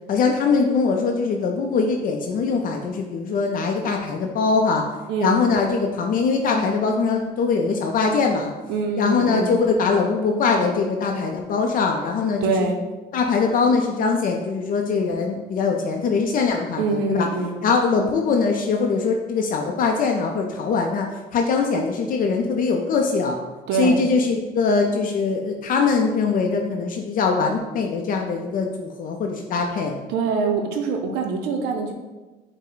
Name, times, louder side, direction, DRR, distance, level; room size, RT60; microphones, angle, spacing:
voice 1, 0.1-4.8 5.2-8.5 9.0-12.7 13.1-17.3 17.6-21.1 21.3-23.4 23.7-29.9, left 4 dB, 55° left, 2 dB, 0.4 m, -22 dB
voice 2, 5.1-5.4 8.7-9.6 12.4-12.8 16.8-17.6 23.7-24.0 30.1-31.9, right 4 dB, 85° right, 4 dB, 0.5 m, -24 dB
5.4 x 2.1 x 3.8 m, 1.2 s
cardioid pair, 110°, 17 cm